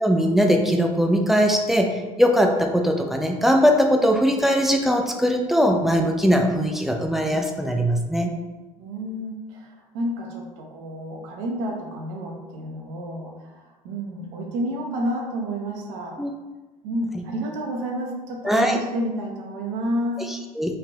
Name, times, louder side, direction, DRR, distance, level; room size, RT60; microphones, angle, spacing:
voice 1, 0.0-8.3 16.2-16.3 17.1-17.2 18.4-18.8 20.3-20.8, equal, ahead, 2 dB, 0.3 m, -20 dB
voice 2, 8.8-16.2 16.8-20.3, equal, 65° right, 1 dB, 0.6 m, -30 dB
3.3 x 2.4 x 2.3 m, 1.2 s
figure-of-eight pair, 60°, 19 cm